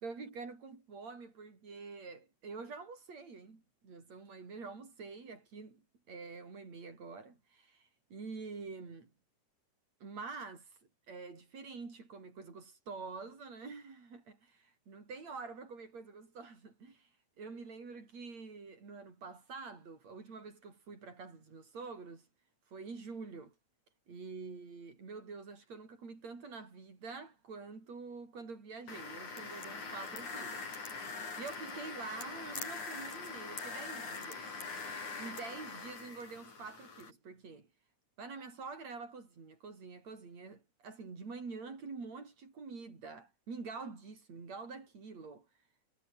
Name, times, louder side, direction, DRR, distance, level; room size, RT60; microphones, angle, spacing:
voice 1, 0.0-5.8 6.1-9.1 10.0-10.7 11.1-17.1 17.4-22.3 22.7-23.5 24.1-30.8 31.1-34.6 35.2-37.7 38.2-45.5, right 4 dB, 65° right, 6.5 m, -47 dB
sound 1, 28.9-37.1, left 4 dB, 85° left, 7.1 m, -43 dB
omnidirectional pair, 3.3 m